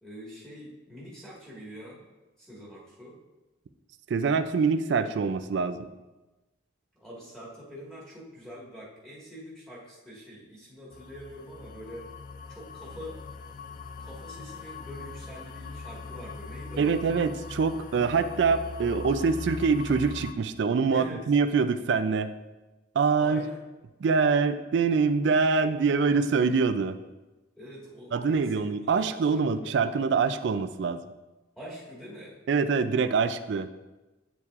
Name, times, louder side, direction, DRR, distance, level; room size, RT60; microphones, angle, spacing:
voice 1, 0.0-2.0 2.4-3.2 6.9-12.1 12.5-13.2 14.0-17.1 20.9-21.2 23.2-23.6 27.6-29.7 31.5-32.4, equal, ahead, -7 dB, 1.7 m, -45 dB
voice 2, 4.1-5.9 16.8-22.3 23.0-23.5 24.0-27.0 28.1-31.0 32.5-33.7, right 5 dB, 60° right, 10 dB, 0.3 m, -25 dB
sound 1, 10.9-20.3, left 4 dB, 40° left, 0.3 m, -41 dB
8.1 x 7.1 x 2.4 m, 1.1 s
head